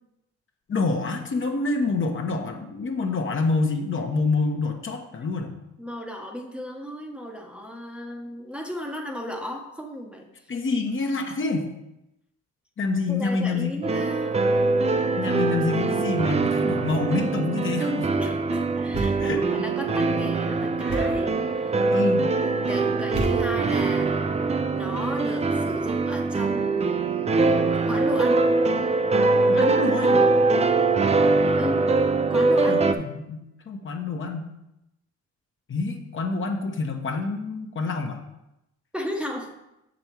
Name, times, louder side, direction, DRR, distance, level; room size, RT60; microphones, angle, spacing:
voice 1, 0.7-5.5 10.5-11.7 12.8-13.8 15.2-18.1 19.2-19.7 21.9-22.4 29.5-30.2 32.7-34.4 35.7-38.2, left 3 dB, 40° left, 3 dB, 1.1 m, -27 dB
voice 2, 5.8-10.3 13.1-14.4 18.2-21.8 22.4-24.2 24.7-27.1 27.9-28.4 31.6-31.8 32.3-32.8 38.9-39.5, equal, 5° right, 0 dB, 0.9 m, -34 dB
sound 1, 13.8-32.9, right 3 dB, 20° right, 0.5 m, -23 dB
Thump thud, 18.9-19.5 20.9-21.3 23.1-23.8, right 1 dB, 75° right, 2.1 m, -30 dB
6.9 x 5.3 x 4.5 m, 0.89 s
cardioid pair, 90°, 30 cm